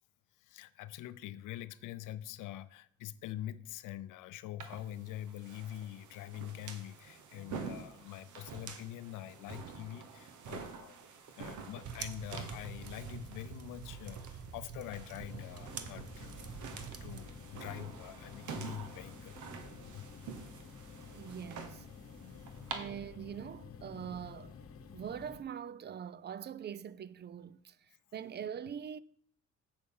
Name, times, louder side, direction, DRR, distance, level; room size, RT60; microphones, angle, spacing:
voice 1, 0.4-11.0 11.4-19.4 19.8-20.1 22.1-22.8 23.7-24.4, left 13 dB, 90° left, 0.6 m, -45 dB
sound 1, 4.6-22.8, right 6 dB, 80° right, 1.3 m, -48 dB
sound 2, 11.8-17.2, right 6 dB, 50° right, 0.9 m, -46 dB
sound 3, 15.1-25.4, left 5 dB, 50° left, 1.0 m, -51 dB
voice 2, 21.1-21.9 22.7-24.5 24.9-29.0, right 8 dB, 35° right, 0.4 m, -43 dB
7.9 x 6.5 x 5.5 m
cardioid pair, 90°, 30 cm